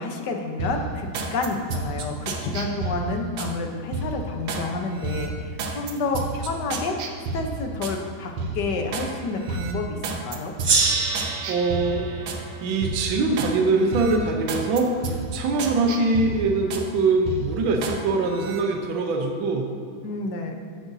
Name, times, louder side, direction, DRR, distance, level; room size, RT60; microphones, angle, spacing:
voice 1, 0.0-7.0 7.3-10.5 20.0-20.5, left 3 dB, 60° left, 3 dB, 1.4 m, -29 dB
sound 1, 0.6-3.5 3.9-4.7 5.0-8.0 8.4-9.1 9.5-12.4 12.8-13.6 13.9-16.9 17.3-18.0 18.3-18.6, right 3 dB, 85° right, 1.7 m, -31 dB
Gong, 10.6-13.8, right 4 dB, 50° right, 0.7 m, -27 dB
voice 2, 11.5-12.0 12.6-19.6, right 3 dB, 70° right, 2 dB, 1.5 m, -23 dB
15.0 x 7.8 x 2.7 m, 2.5 s
omnidirectional pair, 2.3 m